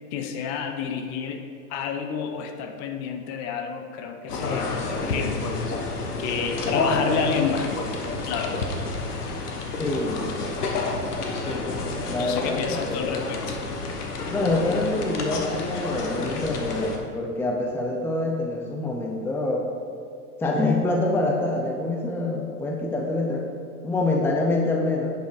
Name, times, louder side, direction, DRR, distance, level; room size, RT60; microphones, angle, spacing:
voice 1, 0.1-1.4 1.7-5.4 5.7-5.8 6.2-7.7 8.3-8.7 12.2-13.6, left 6 dB, 40° left, 6 dB, 0.8 m, -30 dB
sound 1, 4.3-17.0, left 3 dB, 90° left, 1.3 m, -29 dB
voice 2, 9.8-10.4 12.0-13.0 14.3-19.6 20.4-23.5 23.8-25.1, left 2 dB, 5° left, 1 dB, 0.6 m, -26 dB
10.5 x 5.5 x 4.8 m, 2.2 s
hypercardioid pair, 115°, 45 cm